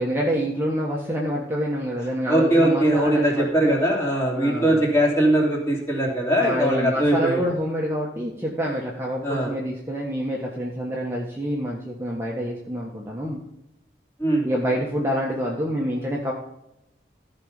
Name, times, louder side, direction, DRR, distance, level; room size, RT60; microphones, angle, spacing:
voice 1, 0.0-3.7 4.4-4.8 6.4-13.4 14.4-16.3, equal, 15° right, -3 dB, 1.3 m, -27 dB
voice 2, 2.3-7.4 9.2-9.5 14.2-14.5, right 1 dB, 15° left, -3 dB, 3.0 m, -21 dB
14.0 x 5.3 x 5.3 m, 0.85 s
head